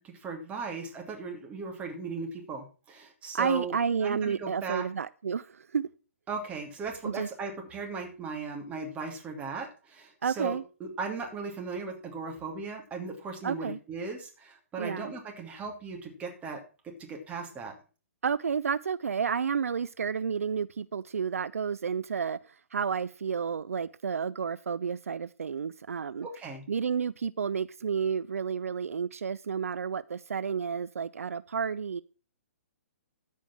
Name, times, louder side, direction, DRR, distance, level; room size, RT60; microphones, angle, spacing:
voice 1, 0.0-3.7 4.0-4.9 6.3-17.7 26.2-26.6, right 4 dB, 15° right, 2.7 m, -37 dB
voice 2, 3.3-5.9 7.0-7.3 10.2-10.6 13.4-13.8 14.8-15.1 18.2-26.3 26.7-32.0, right 6 dB, 75° right, 0.4 m, -31 dB
14.0 x 5.1 x 6.0 m
figure-of-eight pair, 130°, 8 cm